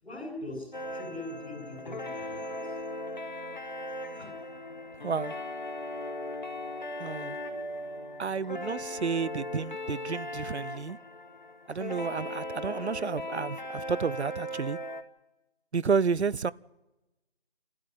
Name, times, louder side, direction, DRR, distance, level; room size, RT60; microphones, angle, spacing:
voice 1, 0.0-2.7 3.8-4.3, left 1 dB, ahead, 1.5 m, -42 dB
sound 1, 0.7-15.0, left 1 dB, 45° left, 1.4 m, -38 dB
voice 2, 5.0-5.3 7.0-7.4 8.2-11.0 11.7-14.8 15.7-16.5, right 5 dB, 90° right, 0.7 m, -31 dB
25.5 x 13.0 x 9.6 m
figure-of-eight pair, 175°, 32 cm